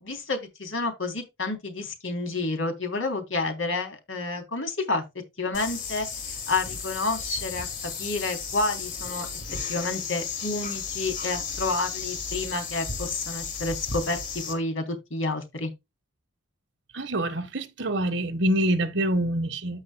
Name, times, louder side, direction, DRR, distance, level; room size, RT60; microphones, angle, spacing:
voice 1, 0.0-5.0 5.4-6.1 6.5-9.3 9.7-14.2 14.5-15.7, left 3 dB, 75° left, 3.6 m, -29 dB
sound 1, 5.5-14.5, left 5 dB, 45° left, 2.4 m, -34 dB
voice 2, 16.9-19.8, right 1 dB, 60° right, 1.5 m, -26 dB
13.5 x 6.3 x 2.3 m
head